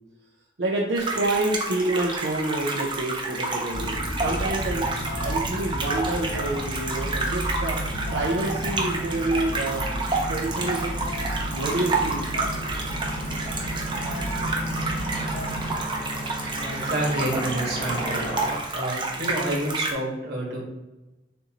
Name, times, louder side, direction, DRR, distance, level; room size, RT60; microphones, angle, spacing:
voice 1, 0.6-7.8 8.1-9.9 10.2-10.9 11.5-12.3, right 2 dB, 85° right, -3 dB, 0.7 m, -28 dB
sound 1, 1.0-19.9, right 3 dB, 25° right, 0.6 m, -30 dB
sound 2, 3.7-15.8, equal, 65° left, 0.8 m, -32 dB
sound 3, 7.7-18.6, equal, 40° left, 1.3 m, -36 dB
voice 2, 16.5-18.2 18.7-20.6, right 1 dB, 65° right, -3 dB, 1.4 m, -28 dB
6.6 x 2.7 x 3.0 m, 1.0 s
head